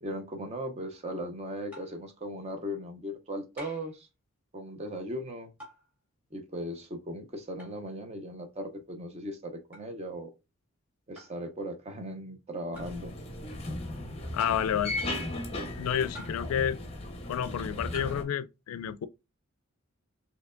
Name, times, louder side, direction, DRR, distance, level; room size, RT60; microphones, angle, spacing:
voice 1, 0.0-4.1 4.5-5.5 6.3-10.3 11.1-13.1, equal, 30° right, 0.6 m, -38 dB
sound 1, 1.7-2.0 3.6-4.0 5.6-5.9 7.6-7.8 9.7-9.9 11.2-11.4 12.7-13.0 14.4-14.8 16.1-16.6 17.9-18.2, right 1 dB, 5° right, 1.7 m, -47 dB
sound 2, 12.7-18.2, left 1 dB, 30° left, 0.6 m, -36 dB
voice 2, 14.3-14.9 15.8-16.8 17.3-19.1, left 9 dB, 90° left, 0.3 m, -30 dB
4.3 x 2.8 x 2.4 m
head